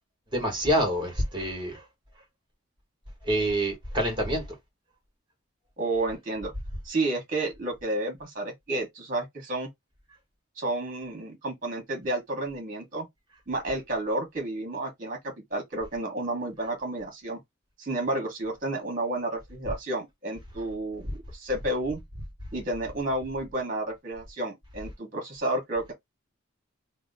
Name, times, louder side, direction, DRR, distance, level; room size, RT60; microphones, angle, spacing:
voice 1, 0.3-1.8 3.3-4.4, right 1 dB, 25° right, 1.3 m, -26 dB
voice 2, 5.8-6.5 6.8-9.7 10.6-13.0 13.5-17.4 17.8-22.0 22.5-25.9, right 2 dB, 40° right, 1.2 m, -31 dB
2.9 x 2.1 x 3.9 m
head